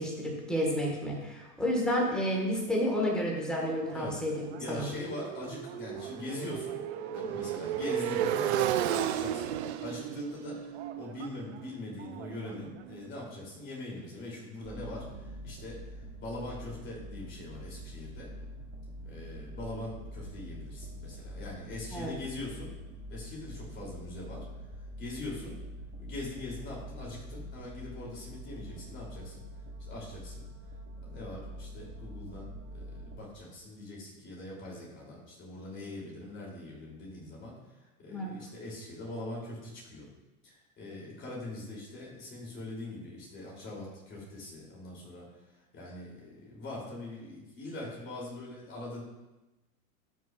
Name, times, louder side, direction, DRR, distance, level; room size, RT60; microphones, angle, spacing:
voice 1, 0.0-4.8 21.9-22.1 38.1-38.3, equal, ahead, -2 dB, 1.5 m, -30 dB
Motorcycle, 3.2-13.0, right 10 dB, 45° right, 0.5 m, -34 dB
voice 2, 4.6-6.8 7.1-18.3 19.0-22.7 23.1-24.4 25.0-25.5 26.0-29.4 29.8-30.5 31.0-37.5 38.0-40.1 40.4-45.3 45.7-49.0, left 2 dB, 25° left, -4 dB, 3.0 m, -42 dB
sound 1, 14.6-33.2, equal, 20° right, 0.9 m, -45 dB
14.0 x 6.2 x 2.4 m, 1.0 s
hypercardioid pair, 140°, 47 cm